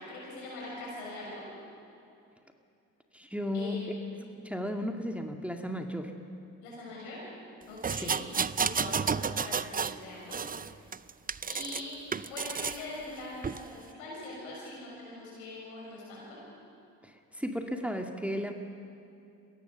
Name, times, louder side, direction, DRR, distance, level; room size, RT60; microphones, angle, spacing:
voice 1, 0.0-1.4 3.5-4.0 6.6-7.2 7.7-8.2 8.6-10.7 11.4-16.4, left 2 dB, 90° left, -5 dB, 6.8 m, -42 dB
voice 2, 3.1-6.1 8.0-8.2 17.0-18.5, left 1 dB, 5° right, 3 dB, 2.1 m, -35 dB
sound 1, 7.8-10.0 10.3-11.8 12.1-12.8 13.4-13.6, right 6 dB, 20° right, 0.5 m, -31 dB
22.5 x 17.0 x 7.0 m, 2.6 s
hypercardioid pair, 45°, 40 cm